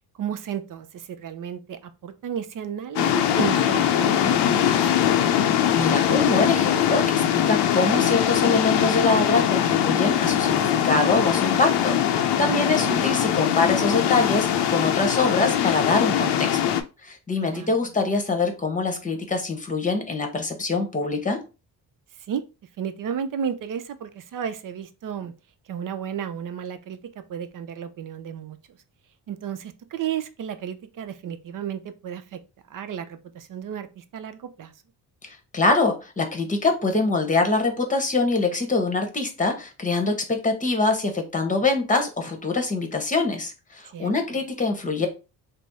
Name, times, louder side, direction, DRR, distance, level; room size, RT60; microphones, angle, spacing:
voice 1, 0.2-5.0 12.4-13.1 17.4-17.9 22.3-22.4 22.8-25.3 25.7-27.0 27.3-28.6 29.3-32.4 32.7-34.7 43.9-44.1, right 8 dB, 50° right, 9 dB, 0.6 m, -33 dB
sound 1, 3.0-16.8, left 10 dB, 80° left, 0.6 m, -22 dB
voice 2, 5.7-16.7 17.0-21.4 35.2-45.1, left 3 dB, 20° left, 5 dB, 0.9 m, -24 dB
3.4 x 2.0 x 4.0 m, 0.30 s
cardioid pair, 95°, 41 cm